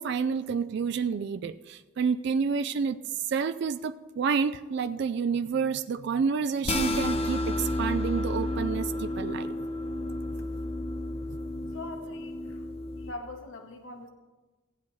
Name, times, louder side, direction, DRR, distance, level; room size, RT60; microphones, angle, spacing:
voice 1, 0.0-3.0 3.2-9.5 11.3-11.4, right 5 dB, 60° right, 11 dB, 0.3 m, -29 dB
sound 1, 6.6-13.1, left 1 dB, 30° left, 0.7 m, -31 dB
voice 2, 11.7-12.7 13.0-14.1, left 2 dB, 90° left, 4 dB, 1.1 m, -42 dB
16.0 x 9.8 x 3.1 m, 1.3 s
head